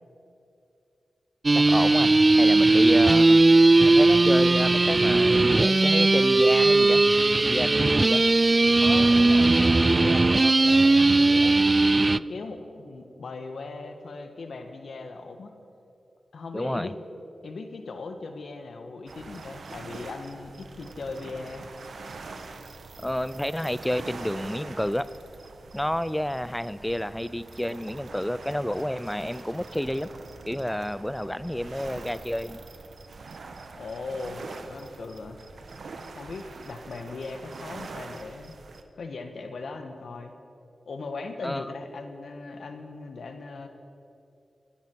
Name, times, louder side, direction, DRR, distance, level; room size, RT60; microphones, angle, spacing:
sound 1, 1.4-12.2, right 2 dB, 40° right, 0.3 m, -18 dB
voice 1, 1.5-7.0 7.4-8.2 16.5-16.9 23.0-25.1 25.7-30.1 30.5-32.6 41.4-41.7, left 1 dB, 10° left, 15 dB, 0.6 m, -30 dB
voice 2, 8.8-11.6 12.0-15.5 16.3-16.9 17.4-21.7 33.7-35.4 36.1-38.6 38.9-40.3 40.9-43.7, left 3 dB, 75° left, 6 dB, 1.5 m, -38 dB
sound 2, 19.1-38.8, right 4 dB, 75° right, 1.1 m, -44 dB
25.5 x 10.5 x 4.7 m, 2.6 s
cardioid pair, 40°, 0 cm